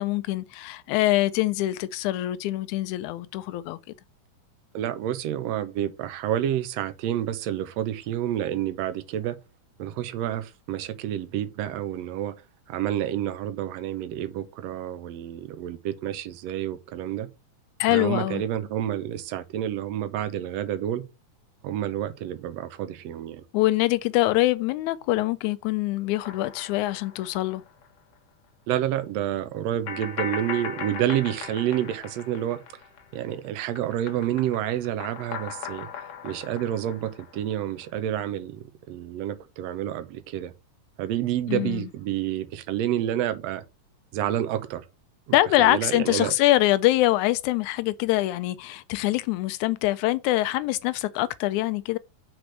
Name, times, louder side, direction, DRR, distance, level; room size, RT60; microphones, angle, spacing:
voice 1, 0.0-3.8 17.8-18.4 23.5-27.6 41.5-41.9 45.3-52.0, left 17 dB, 80° left, 1.8 m, -24 dB
voice 2, 4.7-9.4 9.8-12.4 12.7-17.3 17.9-21.0 21.6-23.4 28.7-32.6 33.1-35.9 36.2-40.5 41.0-43.6 44.1-44.8 45.3-46.3, right 11 dB, 70° right, 1.7 m, -29 dB
sound 1, 26.2-27.8 28.1-28.2 29.9-33.3 33.6-37.8, left 6 dB, 55° left, 2.0 m, -38 dB
6.0 x 4.8 x 6.5 m
omnidirectional pair, 3.7 m